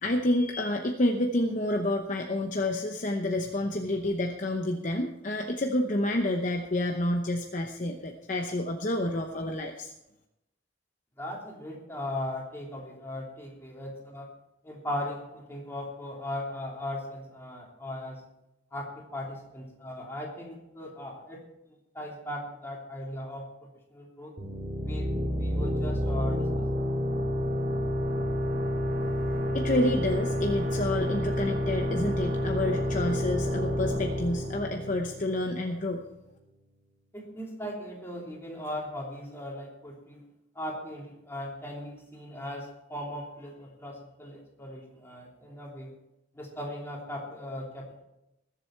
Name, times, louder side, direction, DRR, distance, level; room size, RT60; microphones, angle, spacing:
voice 1, 0.0-9.9 29.5-36.0, left 1 dB, 40° left, 3 dB, 0.8 m, -29 dB
voice 2, 11.2-14.3 14.6-18.2 18.7-21.4 21.9-23.5 23.9-24.3 24.8-26.5 37.1-40.2 40.5-45.9 46.3-48.0, left 1 dB, 15° left, -3 dB, 3.1 m, -38 dB
sound 1, 24.4-35.8, equal, 45° right, 2.1 m, -29 dB
20.5 x 7.8 x 4.5 m, 0.90 s
head